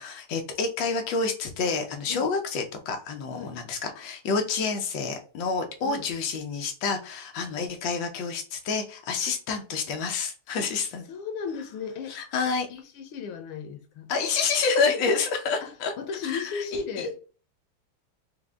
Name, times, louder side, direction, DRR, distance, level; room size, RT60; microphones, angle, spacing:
voice 1, 0.0-11.1 12.1-12.7 14.1-15.9 16.2-17.1, left 4 dB, 70° left, 1.5 m, -28 dB
voice 2, 11.1-12.2 12.7-14.1 15.6-15.7 16.0-17.2, left 5 dB, 90° left, 1.6 m, -35 dB
5.2 x 2.2 x 3.5 m
omnidirectional pair, 2.3 m